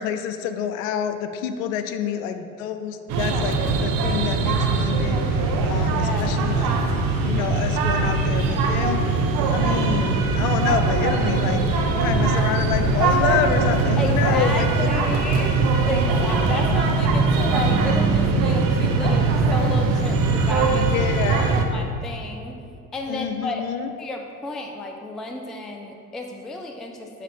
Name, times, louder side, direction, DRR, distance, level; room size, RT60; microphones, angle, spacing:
voice 1, 0.0-6.7 7.2-9.0 9.5-14.9 20.7-21.7 23.1-23.9, left 8 dB, 60° left, 9 dB, 0.6 m, -28 dB
sound 1, 3.1-21.6, right 3 dB, 50° right, 0.8 m, -21 dB
voice 2, 6.0-6.4 14.0-15.6 15.8-20.9 21.5-22.6 22.9-27.2, left 2 dB, ahead, 3 dB, 0.3 m, -32 dB
6.5 x 4.2 x 4.8 m, 2.5 s
figure-of-eight pair, 60°, 45 cm